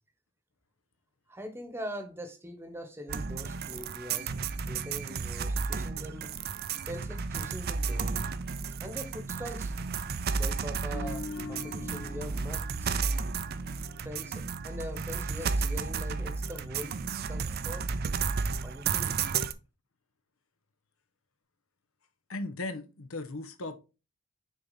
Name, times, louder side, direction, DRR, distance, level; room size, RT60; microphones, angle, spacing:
voice 1, 1.3-4.3 4.7-6.3 6.9-8.3 8.8-9.7 10.3-13.0 14.0-17.0 17.3-17.8 18.6-19.2, equal, 10° right, 1.0 m, -42 dB
sound 1, 3.1-19.5, right 5 dB, 50° right, 0.5 m, -33 dB
sound 2, 10.9-14.1 14.4-14.7, left 3 dB, 50° left, 0.7 m, -43 dB
voice 2, 22.3-23.8, left 2 dB, 85° left, 0.9 m, -37 dB
6.3 x 4.2 x 4.0 m
head